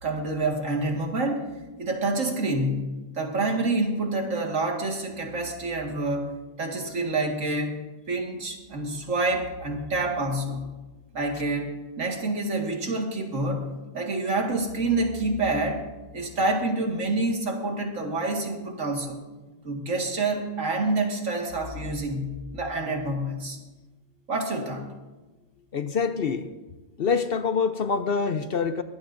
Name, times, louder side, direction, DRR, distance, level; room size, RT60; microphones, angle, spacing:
voice 1, 0.0-1.5 1.8-6.3 6.6-7.8 8.1-10.7 11.1-15.8 16.1-19.2 19.6-23.6 24.3-24.9, right 2 dB, 75° right, 1 dB, 2.3 m, -27 dB
voice 2, 25.7-26.5 27.0-28.8, left 5 dB, 55° left, 9 dB, 0.8 m, -25 dB
22.5 x 19.0 x 2.6 m, 1.2 s
omnidirectional pair, 1.4 m